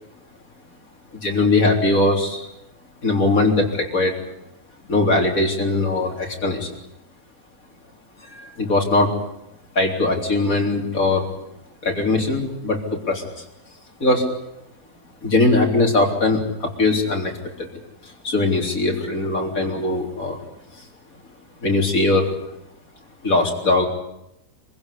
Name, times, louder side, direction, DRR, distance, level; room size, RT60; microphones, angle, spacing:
voice 1, 1.1-2.5 3.0-4.2 4.9-6.7 8.2-9.1 9.8-11.3 11.8-13.4 14.0-14.4 15.2-17.7 18.0-20.4 20.7-20.8 21.6-22.3 23.2-23.9, left 2 dB, 65° left, 1 dB, 4.1 m, -20 dB
24.5 x 15.5 x 9.9 m, 0.83 s
omnidirectional pair, 1.5 m